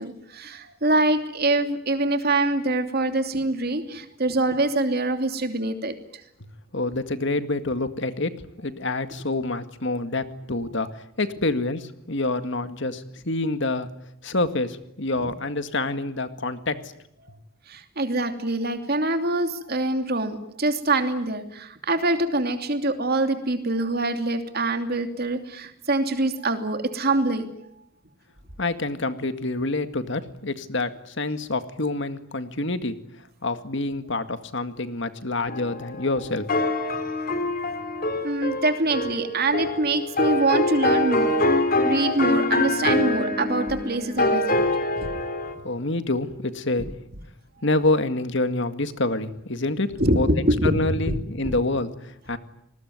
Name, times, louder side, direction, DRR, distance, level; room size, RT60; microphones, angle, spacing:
voice 1, 0.0-5.9 17.7-27.5 38.2-41.4 41.8-44.7 45.0-45.1 50.0-50.8 51.0-51.2 51.4-51.6, right 2 dB, 50° right, 7 dB, 2.9 m, -24 dB
voice 2, 6.7-13.9 14.2-16.9 28.6-33.0 33.4-36.5 45.6-46.9 47.6-50.3 50.6-52.4, left 2 dB, 60° left, 10 dB, 2.0 m, -27 dB
sound 1, 35.5-45.5, left 2 dB, 45° left, 3.4 m, -24 dB
27.5 x 20.5 x 9.5 m, 0.77 s
head